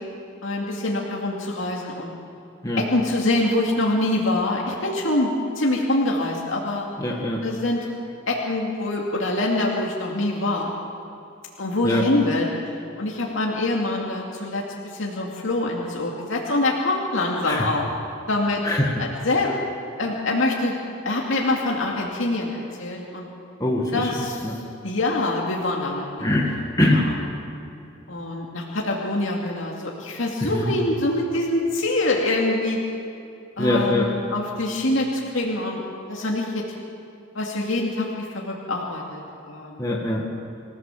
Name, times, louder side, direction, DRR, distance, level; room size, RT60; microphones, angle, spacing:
voice 1, 0.4-2.1 2.8-5.3 5.6-6.9 7.4-7.9 8.3-10.7 11.6-12.5 13.0-17.9 18.3-18.6 19.0-19.5 20.0-20.8 21.0-23.3 23.9-24.4 24.8-26.4 26.8-27.3 28.1-32.8 33.6-35.8 36.1-36.6 37.3-39.2 39.5-39.9, left 2 dB, 65° left, -2 dB, 2.5 m, -25 dB
voice 2, 7.0-7.4 11.8-12.1 17.5-17.7 18.6-18.9 23.6-24.6 26.2-27.1 30.4-30.7 33.6-34.2 39.8-40.3, left 1 dB, 15° left, -2 dB, 1.9 m, -23 dB
26.5 x 16.0 x 7.4 m, 2.7 s
head